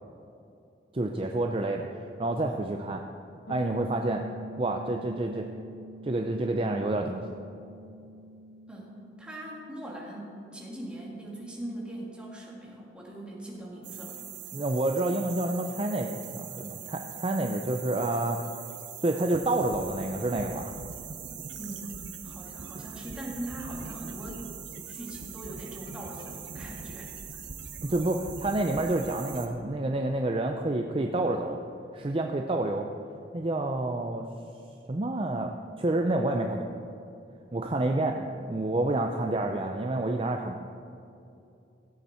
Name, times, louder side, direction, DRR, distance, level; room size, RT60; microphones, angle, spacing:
voice 1, 0.9-3.0 3.5-4.2 4.6-5.5 6.0-7.2 14.5-18.4 19.0-20.7 27.8-31.6 31.9-32.9 33.3-34.3 34.9-36.7 37.5-38.2 38.5-40.7, right 2 dB, 30° right, 3 dB, 0.5 m, -28 dB
sound 1, 3.5-13.2, equal, 70° left, 0.8 m, -48 dB
voice 2, 9.2-14.2 21.6-24.5 24.9-27.1 38.1-38.3, right 1 dB, 5° right, -4 dB, 2.1 m, -41 dB
sound 2, 13.8-29.5, right 7 dB, 80° right, 1.0 m, -42 dB
16.0 x 8.3 x 4.4 m, 2.6 s
head